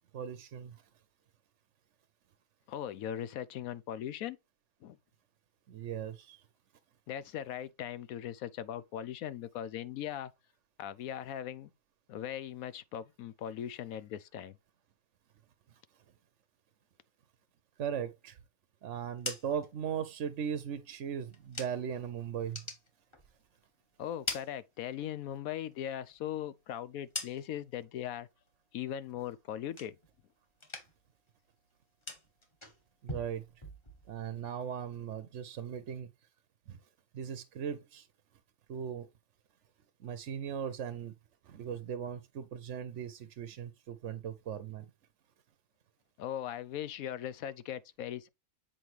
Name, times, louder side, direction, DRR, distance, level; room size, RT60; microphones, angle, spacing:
voice 1, 0.1-0.7 5.7-6.4 17.8-18.3 18.8-22.6 33.0-33.4 34.1-36.1 36.7-36.8 37.1-38.0 38.7-39.1 40.0-41.1 41.5-44.9, right 8 dB, 60° right, 0.9 m, -38 dB
voice 2, 2.7-4.4 4.8-5.0 7.1-10.3 10.8-11.7 12.1-14.6 24.0-28.3 28.7-30.0 46.2-48.3, left 10 dB, 70° left, 1.0 m, -39 dB
sound 1, 18.9-22.0 22.4-23.7 24.0-25.3 25.6-27.8 28.2-28.6 29.0-30.3 30.5-31.2 31.4-34.3, left 2 dB, 20° left, 1.3 m, -45 dB
7.7 x 5.1 x 3.2 m
omnidirectional pair, 1.7 m